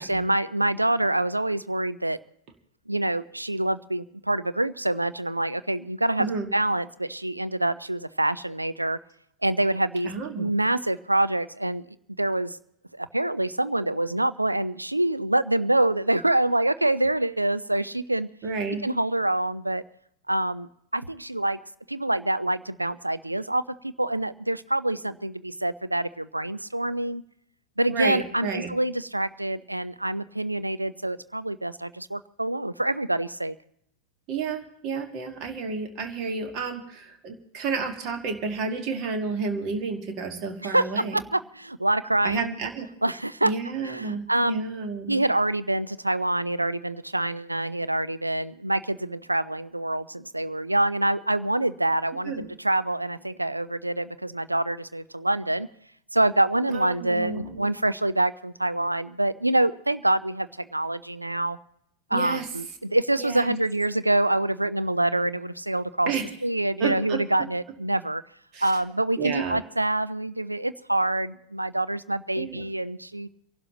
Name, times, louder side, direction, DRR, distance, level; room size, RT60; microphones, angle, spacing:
voice 1, 0.0-2.2 2.9-6.3 6.5-9.0 9.4-11.8 12.2-12.6 12.9-18.3 18.8-19.8 20.3-21.6 21.9-27.2 27.8-33.6 40.6-40.8 41.1-42.5 43.0-43.5 43.8-44.6 45.1-55.7 56.1-61.6 62.1-66.1 66.4-68.2 68.6-73.3, right 1 dB, 85° right, 13 dB, 0.5 m, -26 dB
voice 2, 6.2-6.5 10.0-10.5 18.4-18.8 27.9-28.7 34.3-41.2 42.2-42.9 43.4-45.3 52.3-52.4 56.7-57.7 62.1-62.5 63.2-63.6 66.1-66.3 66.8-67.5 68.5-68.7 69.2-69.6 72.4-72.7, right 4 dB, 40° right, 5 dB, 1.8 m, -31 dB
29.5 x 12.0 x 2.9 m, 0.75 s
figure-of-eight pair, 90°, 0 cm